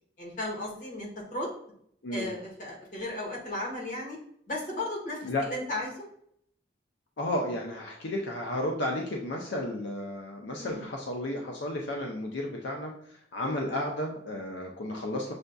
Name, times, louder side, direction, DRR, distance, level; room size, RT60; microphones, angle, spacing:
voice 1, 0.2-1.5 2.1-4.2 4.5-6.0 10.6-10.8, left 1 dB, 45° left, -3 dB, 1.3 m, -35 dB
voice 2, 7.2-15.3, left 1 dB, 80° left, 0 dB, 0.6 m, -33 dB
6.4 x 2.5 x 2.2 m, 0.67 s
head